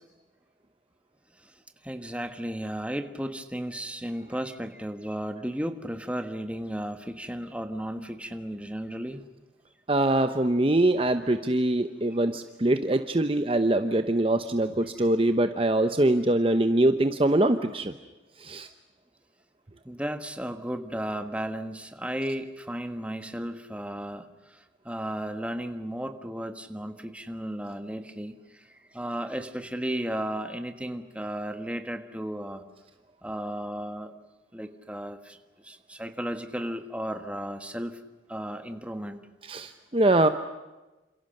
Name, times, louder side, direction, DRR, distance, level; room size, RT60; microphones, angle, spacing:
voice 1, 1.8-9.2 19.8-32.7 33.2-34.1 34.5-38.0 38.3-39.3, equal, 5° right, 8 dB, 1.5 m, -34 dB
voice 2, 9.9-17.9 18.4-18.7 39.4-40.3, right 1 dB, 30° right, 9 dB, 0.9 m, -23 dB
28.5 x 27.0 x 6.6 m, 1.1 s
head